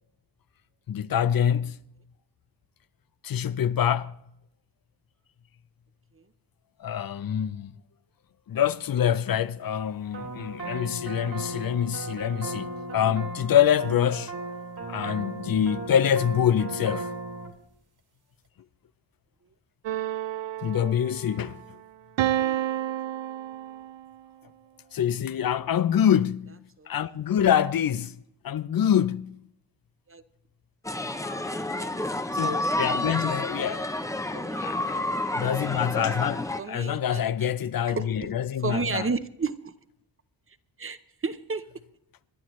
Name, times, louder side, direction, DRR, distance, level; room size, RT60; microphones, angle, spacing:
voice 1, 0.9-1.8 3.2-4.2 6.8-7.7 8.5-14.3 14.9-17.1 20.6-21.6 24.9-28.2 28.4-29.5 32.3-33.9 34.6-35.0 35.4-39.1, left 9 dB, 50° left, 0.6 m, -25 dB
sound 1, 10.1-17.5, right 3 dB, 60° right, 2.4 m, -36 dB
sound 2, 19.8-21.5 22.2-24.1, right 12 dB, 80° right, 0.6 m, -30 dB
voice 2, 22.4-22.7 26.8-26.9 30.1-30.2 31.7-31.9 32.2-32.6 34.3-34.7 36.6-37.5 37.9-38.3 38.6-39.7 40.8-41.6, right 4 dB, 30° right, 0.7 m, -33 dB
sound 3, 30.8-36.6, left 1 dB, 5° left, 0.6 m, -30 dB
26.5 x 11.5 x 3.1 m
wide cardioid pair, 135°, 44 cm